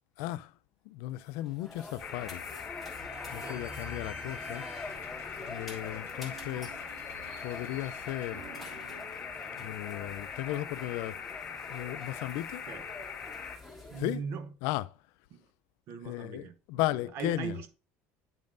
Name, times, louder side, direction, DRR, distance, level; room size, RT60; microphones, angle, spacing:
voice 1, 0.2-0.5 0.9-2.4 3.3-4.7 5.5-6.8 7.4-8.4 9.5-11.2 11.7-12.6 14.0-14.2 14.6-14.9 16.0-17.6, left 16 dB, 70° left, 0.4 m, -35 dB
sound 1, 1.2-14.2, left 2 dB, ahead, 1.5 m, -47 dB
sound 2, 2.0-13.6, left 7 dB, 30° left, 1.3 m, -42 dB
Slam / Squeak, 2.8-10.1, right 4 dB, 80° right, 2.1 m, -52 dB
voice 2, 13.9-14.5 15.3-15.4 15.9-16.8 17.1-17.8, right 5 dB, 50° right, 0.8 m, -39 dB
8.9 x 5.3 x 2.5 m
cardioid pair, 170°, 6 cm